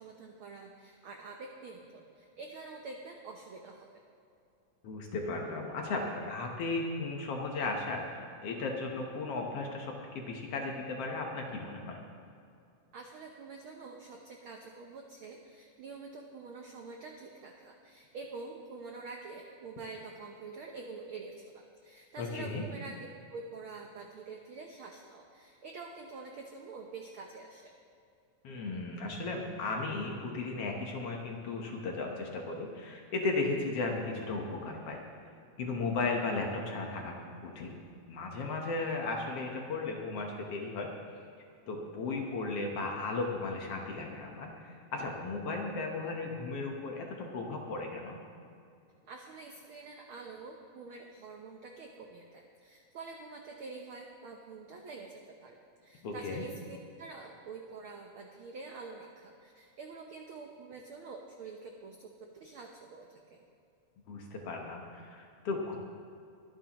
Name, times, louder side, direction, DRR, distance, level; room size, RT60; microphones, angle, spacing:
voice 1, 0.0-3.9 12.9-23.0 23.3-27.7 49.0-63.5, right 4 dB, 80° right, 2 dB, 1.1 m, -47 dB
voice 2, 4.8-12.0 22.2-22.6 28.4-35.0 35.6-37.1 37.4-37.8 38.1-40.9 41.7-48.2 56.0-56.4 64.1-65.8, left 3 dB, 60° left, 1 dB, 1.9 m, -35 dB
23.0 x 9.8 x 3.0 m, 2.6 s
omnidirectional pair, 3.5 m